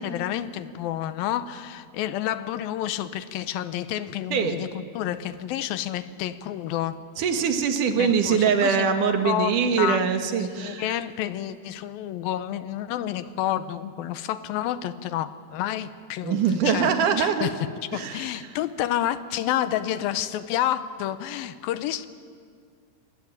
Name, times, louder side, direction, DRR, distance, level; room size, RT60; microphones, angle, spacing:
voice 1, 0.0-7.0 8.0-8.9 9.2-10.0 10.6-16.4 16.6-16.9 17.2-17.5 17.9-22.1, left 12 dB, 85° left, 13 dB, 2.7 m, -29 dB
voice 2, 7.2-10.9 16.2-17.5 17.9-18.5, right 6 dB, 65° right, 6 dB, 3.1 m, -23 dB
24.5 x 21.0 x 9.2 m, 2.1 s
omnidirectional pair, 4.1 m